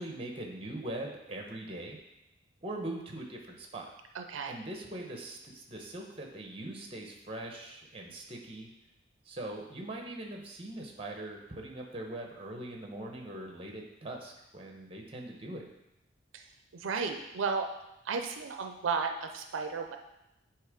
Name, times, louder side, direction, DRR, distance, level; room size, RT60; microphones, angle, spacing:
voice 1, 0.0-2.0 2.6-3.9 4.5-8.7 9.2-15.6, right 1 dB, 30° right, 1 dB, 1.0 m, -41 dB
voice 2, 4.1-4.5 16.3-16.4 16.7-17.7 18.1-20.0, right 5 dB, 85° right, 5 dB, 0.5 m, -33 dB
8.8 x 3.0 x 5.0 m, 0.90 s
head